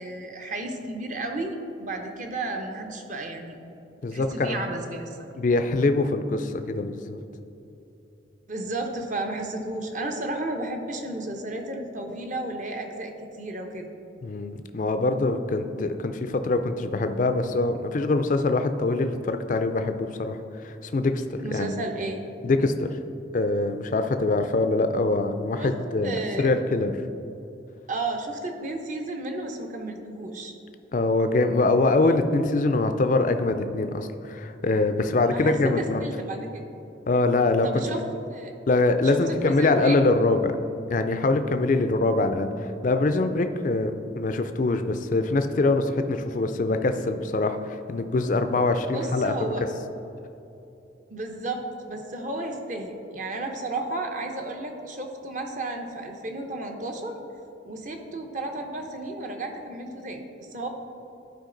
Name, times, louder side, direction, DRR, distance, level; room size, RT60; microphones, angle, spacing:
voice 1, 0.0-3.6 4.1-5.3 8.5-13.9 21.4-22.2 25.6-25.7 26.0-26.5 27.9-30.5 35.2-36.6 37.6-38.0 38.3-38.5 39.0-40.0 48.9-49.6 51.1-57.2 57.7-60.7, right 2 dB, 40° right, 3 dB, 0.7 m, -33 dB
voice 2, 4.0-4.6 5.4-7.2 14.2-21.8 22.4-22.9 23.3-26.9 30.9-36.0 37.1-37.8 38.7-40.5 40.9-49.5, left 2 dB, 40° left, 8 dB, 0.4 m, -24 dB
12.0 x 4.9 x 3.9 m, 2.9 s
head